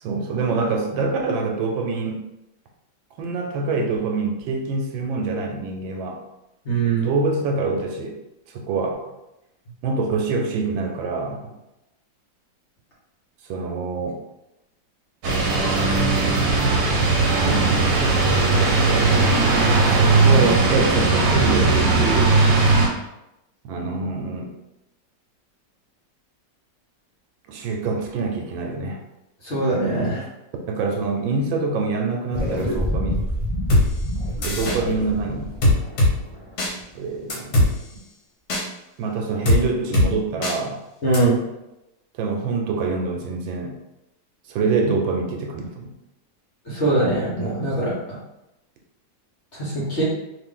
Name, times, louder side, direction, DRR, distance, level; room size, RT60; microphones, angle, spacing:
voice 1, 0.0-2.3 3.2-6.2 6.8-8.2 8.5-8.9 9.8-11.5 13.5-14.2 17.3-17.9 19.8-22.4 23.6-24.6 27.5-29.0 30.7-33.3 34.4-35.5 36.9-37.7 39.0-40.8 42.2-43.8 44.5-45.9, right 4 dB, 85° right, 2 dB, 1.4 m, -25 dB
voice 2, 6.6-7.1 29.4-30.2 41.0-41.4 46.7-47.9 49.5-50.0, right 2 dB, 40° left, -7 dB, 1.2 m, -22 dB
sound 1, 15.2-22.9, right 3 dB, 70° right, 1.3 m, -18 dB
sound 2, 32.3-37.0, equal, 35° right, 0.5 m, -27 dB
sound 3, 33.7-33.8 34.4-34.8 35.6-36.1 36.6-36.7 37.3-37.7 38.5-38.6 39.4-39.6 39.9-40.1 40.4-40.5 41.1-41.2, left 1 dB, 60° left, 1.4 m, -18 dB
3.2 x 2.5 x 3.7 m, 0.92 s
omnidirectional pair, 2.1 m